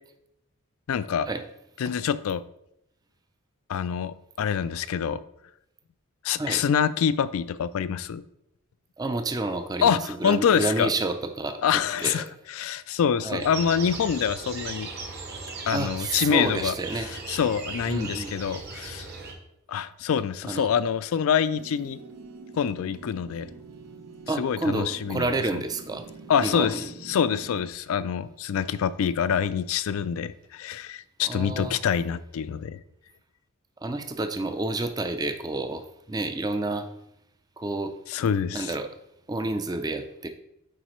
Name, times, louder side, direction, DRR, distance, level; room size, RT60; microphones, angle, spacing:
voice 1, 0.9-1.3 1.8-2.4 3.7-5.2 6.2-8.2 9.8-10.9 11.6-14.9 15.7-19.1 19.7-22.0 22.5-23.5 24.4-25.3 26.3-32.8 38.1-38.7, left 7 dB, 65° left, 15 dB, 0.3 m, -26 dB
voice 2, 9.0-11.6 12.0-12.2 13.2-13.5 15.7-17.1 17.8-18.3 20.4-20.7 24.3-26.0 26.4-26.9 31.3-31.8 33.8-36.9 37.6-38.0 38.5-38.9 39.3-40.3, right 2 dB, 15° right, 7 dB, 0.4 m, -29 dB
sound 1, 13.4-19.3, right 3 dB, 45° right, 1.0 m, -38 dB
sound 2, 21.5-27.7, right 3 dB, 85° right, 0.6 m, -45 dB
9.1 x 4.0 x 3.1 m, 0.80 s
head